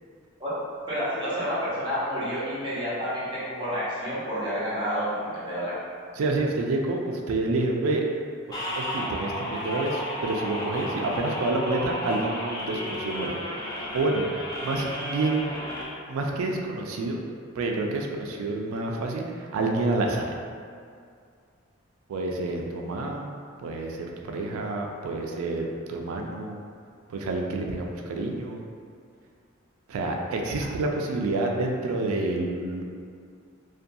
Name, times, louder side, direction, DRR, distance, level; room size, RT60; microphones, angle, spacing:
voice 1, 0.9-5.8, equal, 25° right, -11 dB, 0.8 m, -29 dB
voice 2, 6.2-8.1 8.5-15.5 16.1-17.2 17.5-20.4 22.1-23.3 23.6-26.6 27.1-28.7 29.9-32.8, right 2 dB, 85° right, 1 dB, 0.3 m, -28 dB
sound 1, 8.5-15.8, equal, 20° left, 0.4 m, -33 dB
2.5 x 2.2 x 2.6 m, 2.3 s
head